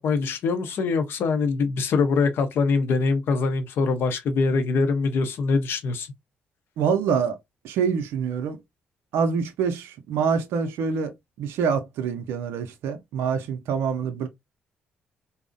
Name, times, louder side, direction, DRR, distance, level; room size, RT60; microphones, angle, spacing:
voice 1, 0.0-6.1, left 4 dB, 60° left, 0.6 m, -23 dB
voice 2, 6.8-7.4 7.6-8.6 9.1-14.3, right 6 dB, 70° right, 0.4 m, -26 dB
2.6 x 2.0 x 2.5 m
hypercardioid pair, 50°, 4 cm